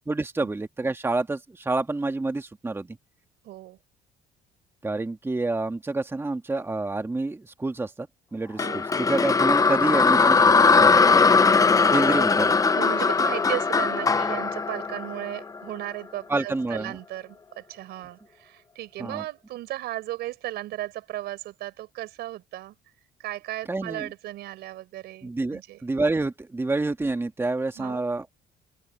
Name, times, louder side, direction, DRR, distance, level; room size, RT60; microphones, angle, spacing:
voice 1, 0.1-3.0 4.8-11.1 11.9-12.5 16.3-17.0 19.0-19.2 23.7-24.1 25.2-28.3, right 2 dB, 15° right, 1.6 m, -28 dB
voice 2, 3.4-3.8 8.6-8.8 12.7-22.7 23.2-25.8 27.8-28.0, right 15 dB, 80° right, 4.6 m, -36 dB
sound 1, 8.6-15.8, left 4 dB, 20° left, 0.6 m, -20 dB
open air
cardioid pair, 110°, 17 cm